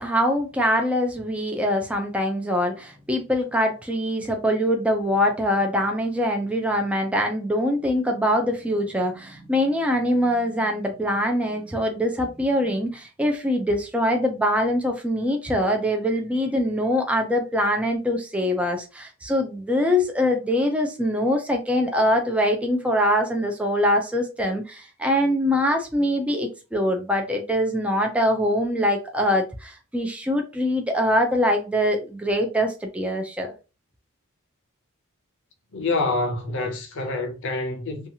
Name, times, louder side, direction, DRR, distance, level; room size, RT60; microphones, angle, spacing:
voice 1, 0.0-33.5, equal, 5° right, 0.3 m, -23 dB
voice 2, 35.7-38.1, left 2 dB, 55° left, 0.6 m, -26 dB
2.8 x 2.3 x 2.7 m
head